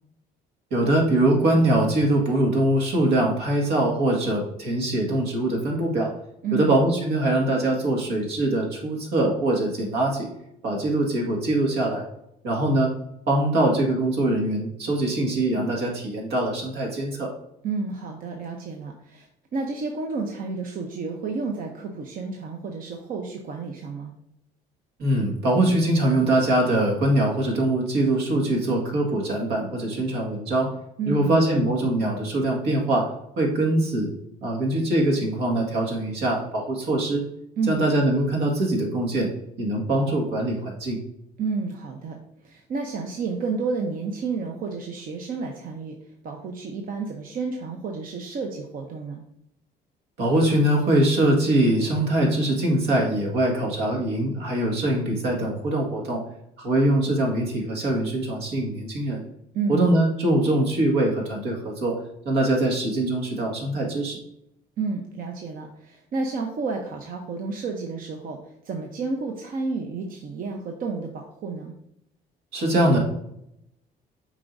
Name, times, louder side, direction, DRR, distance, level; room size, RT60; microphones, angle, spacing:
voice 1, 0.7-6.1 6.5-10.3 10.6-12.1 12.4-12.9 13.3-17.3 25.0-30.7 31.1-33.1 33.4-34.1 34.4-37.2 37.7-39.3 39.6-41.0 50.2-56.2 56.6-59.2 59.7-62.0 62.3-64.2 72.5-73.0, right 1 dB, 80° right, 0 dB, 1.9 m, -23 dB
voice 2, 17.6-24.1 31.0-31.4 37.6-37.8 41.4-46.0 46.2-49.2 59.5-59.8 64.8-71.7, right 4 dB, 55° right, 2 dB, 0.8 m, -31 dB
7.4 x 4.9 x 2.6 m, 0.79 s
cardioid pair, 110°, 17 cm